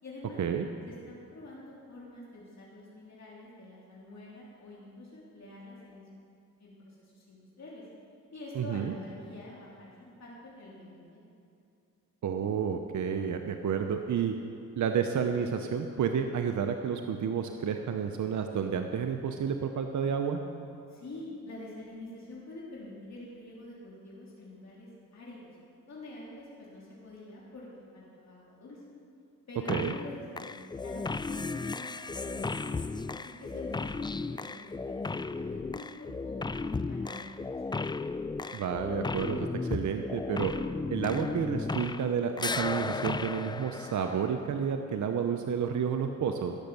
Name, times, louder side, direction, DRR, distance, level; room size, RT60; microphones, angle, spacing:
voice 1, 0.0-0.4 0.9-6.0 6.6-7.8 8.3-11.2 20.9-25.5 25.9-28.8 29.5-32.7 33.1-37.3 37.6-37.8, left 1 dB, 55° left, -6 dB, 3.4 m, -46 dB
voice 2, 8.5-8.9 12.2-14.3 14.8-20.4 29.7-29.9 38.5-40.5 40.9-46.6, right 7 dB, 60° right, 5 dB, 0.8 m, -30 dB
sound 1, 29.7-30.1 30.4-42.1 42.4-44.6, left 3 dB, 15° left, 0.3 m, -35 dB
17.0 x 6.5 x 7.1 m, 2.6 s
cardioid pair, 65°, 33 cm